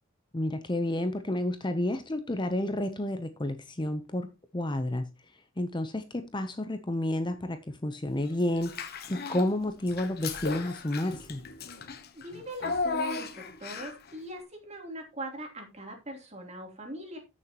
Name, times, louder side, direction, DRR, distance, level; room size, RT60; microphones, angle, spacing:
voice 1, 0.3-4.3 4.5-5.1 5.6-11.4, left 1 dB, 25° left, 9 dB, 0.7 m, -30 dB
Child speech kid speaking / Bathtub (filling or washing), 8.6-9.5 9.9-14.1, left 4 dB, 50° left, 1.3 m, -35 dB
voice 2, 12.1-17.2, right 1 dB, 35° right, 2 dB, 3.2 m, -41 dB
14.5 x 6.7 x 2.9 m, 0.26 s
head